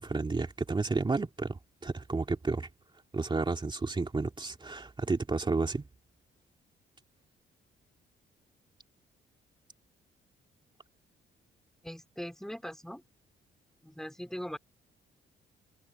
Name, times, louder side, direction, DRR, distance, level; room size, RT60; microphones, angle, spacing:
voice 1, 0.0-2.7 3.1-5.8, right 3 dB, 25° right, 2.8 m, -31 dB
voice 2, 11.8-13.0 13.8-14.6, equal, ahead, 4.1 m, -40 dB
open air
cardioid pair, 90°, 20 cm